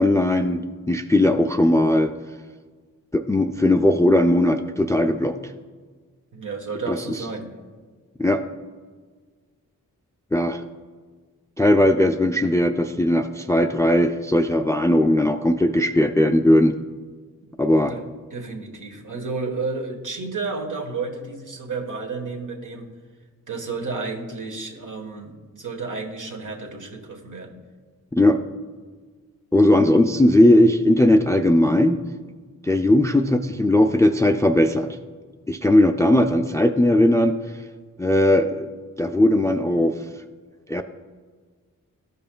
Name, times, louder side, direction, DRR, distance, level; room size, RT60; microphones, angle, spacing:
voice 1, 0.0-2.1 3.1-5.3 6.9-7.0 8.2-8.4 10.3-10.6 11.6-16.8 17.6-17.9 28.1-28.4 29.5-32.0 32.6-34.9 35.5-37.4 38.0-38.7 39.0-39.9 40.7-40.8, left 1 dB, 10° left, 6 dB, 0.3 m, -18 dB
voice 2, 6.3-7.5 17.9-18.0 18.3-22.9 23.5-27.5, right 4 dB, 65° right, 1 dB, 1.3 m, -31 dB
12.5 x 5.5 x 2.2 m, 1.5 s
cardioid pair, 45°, 34 cm